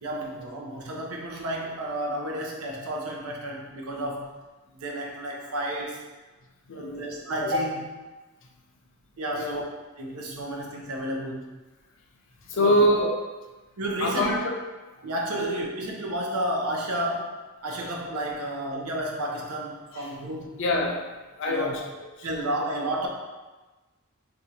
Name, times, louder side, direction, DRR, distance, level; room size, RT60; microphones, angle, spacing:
voice 1, 0.0-4.3 4.7-6.0 6.7-8.0 9.2-9.6 10.0-11.5 12.6-12.8 13.8-14.4 15.0-17.4 17.6-20.6 21.5-21.8 22.2-23.1, right 1 dB, 90° right, -1 dB, 0.7 m, -31 dB
voice 2, 6.7-7.0 9.3-9.6 12.5-13.2 14.0-14.6 15.4-15.5 18.5-18.6 19.9-20.2 20.6-21.0 21.4-22.3, left 1 dB, 60° left, 0 dB, 0.5 m, -25 dB
2.6 x 2.4 x 4.1 m, 1.2 s
head